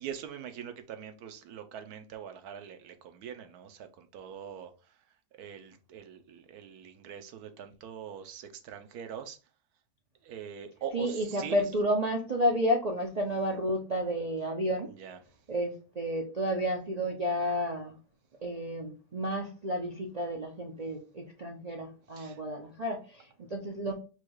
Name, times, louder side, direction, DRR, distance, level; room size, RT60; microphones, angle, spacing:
voice 1, 0.0-5.0 5.3-9.4 10.2-11.6 14.9-15.2 22.1-22.4, right 8 dB, 70° right, 1.1 m, -43 dB
voice 2, 10.9-14.9 15.5-18.0 18.4-23.9, equal, 55° right, 0.4 m, -31 dB
4.6 x 2.3 x 4.6 m
omnidirectional pair, 1.7 m